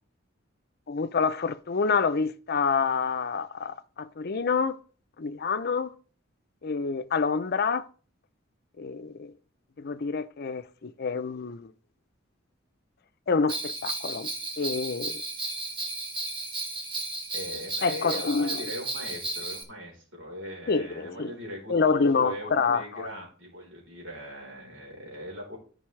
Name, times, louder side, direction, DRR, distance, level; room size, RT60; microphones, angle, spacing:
voice 1, 0.9-4.8 5.2-5.9 6.6-7.8 8.8-9.3 9.8-11.7 13.3-14.3 14.6-15.2 17.8-18.6 20.7-21.3 21.7-23.1, left 5 dB, 55° left, 0.5 m, -27 dB
Bell, 13.5-19.6, right 2 dB, 25° right, 1.2 m, -34 dB
voice 2, 17.3-25.6, left 1 dB, 80° right, 4.0 m, -40 dB
13.5 x 5.4 x 3.2 m
head